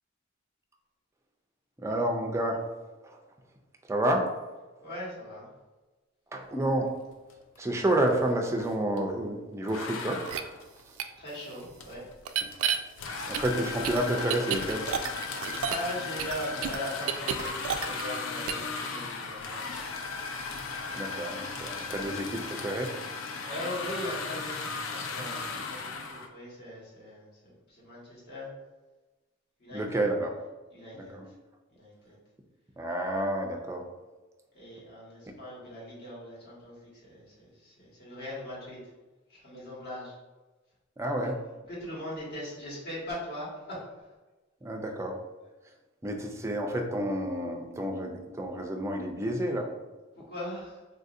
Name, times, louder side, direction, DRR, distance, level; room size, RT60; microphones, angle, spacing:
voice 1, 1.8-2.6 3.0-3.2 3.9-4.3 6.3-6.9 7.6-10.2 12.4-12.5 13.3-14.9 20.9-22.9 29.7-30.3 30.9-31.3 32.8-33.9 41.0-41.4 44.6-45.2 46.0-49.7, right 1 dB, 15° right, 2 dB, 0.4 m, -30 dB
voice 2, 4.8-5.5 11.2-12.1 15.6-19.7 23.4-28.5 29.6-30.0 30.7-31.2 31.8-32.2 34.5-38.8 39.3-40.1 41.1-41.2 41.7-43.8 50.2-50.8, left 1 dB, 55° left, -6 dB, 1.3 m, -40 dB
sound 1, 7.3-7.6 7.8-9.1 9.7-26.3, left 4 dB, 70° left, 0.4 m, -37 dB
sound 2, 10.3-10.4 11.0-11.1 12.2-12.8 13.3-15.9 16.2-18.2 18.5-18.7, right 8 dB, 85° right, 0.3 m, -31 dB
3.9 x 2.6 x 2.5 m, 1.2 s
head